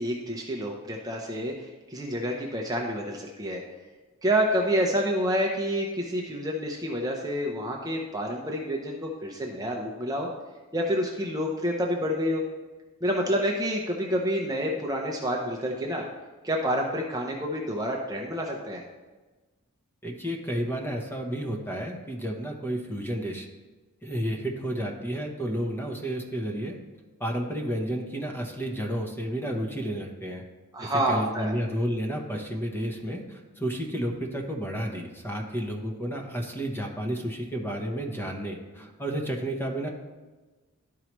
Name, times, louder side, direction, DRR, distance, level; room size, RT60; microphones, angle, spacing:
voice 1, 0.0-3.6 4.2-10.3 10.7-12.4 13.0-16.0 16.4-18.8 30.7-31.5, equal, 15° right, 0 dB, 0.7 m, -28 dB
voice 2, 20.0-23.5 24.0-26.8 27.2-30.4 30.8-39.9, equal, 10° left, 1 dB, 0.9 m, -31 dB
12.0 x 4.7 x 3.0 m, 1.2 s
head